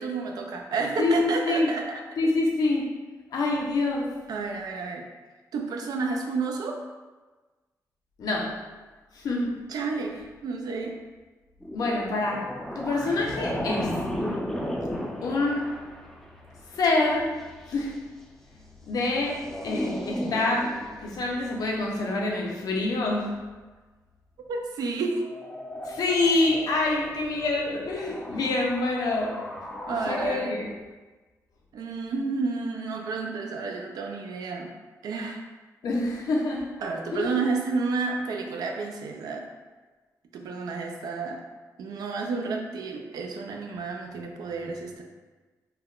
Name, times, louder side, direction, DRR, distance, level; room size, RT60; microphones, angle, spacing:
voice 1, 0.0-2.0 4.3-5.0 5.5-6.8 9.7-10.2 10.4-11.0 24.5-25.2 29.9-30.6 31.7-34.7 35.0-35.4 36.8-39.5 40.3-41.4 41.8-45.0, right 4 dB, 80° right, 2 dB, 0.4 m, -30 dB
voice 2, 1.0-1.7 2.2-2.9 3.3-4.1 8.2-8.6 9.1-9.5 10.2-10.3 11.7-14.0 15.2-15.7 16.7-17.4 17.7-17.9 18.9-23.4 25.8-29.4 29.9-30.7 35.8-36.7 37.1-37.4, left 2 dB, 75° left, -1 dB, 0.5 m, -26 dB
sound 1, 11.6-18.0 19.0-21.6 25.1-30.3, equal, 5° left, 0.4 m, -35 dB
3.4 x 2.1 x 2.3 m, 1.3 s
cardioid pair, 90°, 7 cm